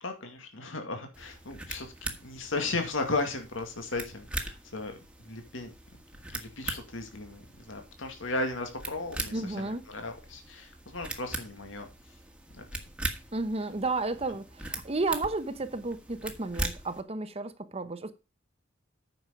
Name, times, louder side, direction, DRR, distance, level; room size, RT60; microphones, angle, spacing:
voice 1, 0.0-5.7 6.3-11.9 12.5-12.6, left 2 dB, 80° left, 2.2 m, -36 dB
sound 1, 1.1-17.0, right 1 dB, 5° right, 1.4 m, -41 dB
voice 2, 9.3-9.8 13.3-18.1, right 3 dB, 30° right, 0.9 m, -32 dB
9.2 x 6.2 x 5.1 m
head